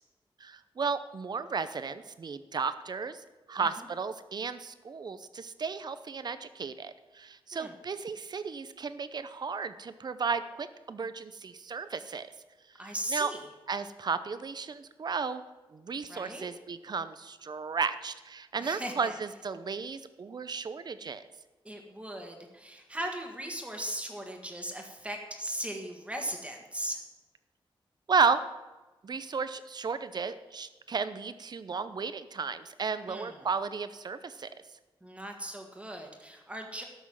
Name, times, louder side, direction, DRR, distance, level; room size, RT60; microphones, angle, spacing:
voice 1, 0.4-3.2 3.5-12.3 12.8-13.3 13.7-15.4 15.7-21.2 28.1-28.4 29.0-34.5, right 5 dB, 50° right, 12 dB, 0.7 m, -33 dB
voice 2, 12.8-13.5 16.1-16.5 18.6-19.1 21.6-27.0 33.1-33.5 35.0-36.8, right 1 dB, 15° right, 2 dB, 1.6 m, -38 dB
12.5 x 6.3 x 7.3 m, 1.1 s
wide cardioid pair, 120°, 9 cm